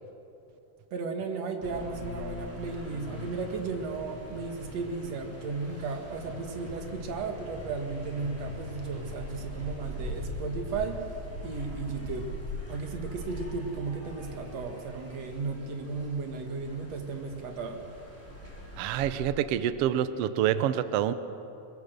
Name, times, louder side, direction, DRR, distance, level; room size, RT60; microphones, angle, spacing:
voice 1, 0.9-11.0 11.4-12.3 12.7-17.8, right 4 dB, 55° right, 4 dB, 2.8 m, -35 dB
sound 1, 1.6-19.2, left 1 dB, 5° left, 4.7 m, -42 dB
voice 2, 18.8-21.1, right 10 dB, 85° right, 12 dB, 1.3 m, -27 dB
22.5 x 22.0 x 6.7 m, 2.9 s
omnidirectional pair, 3.7 m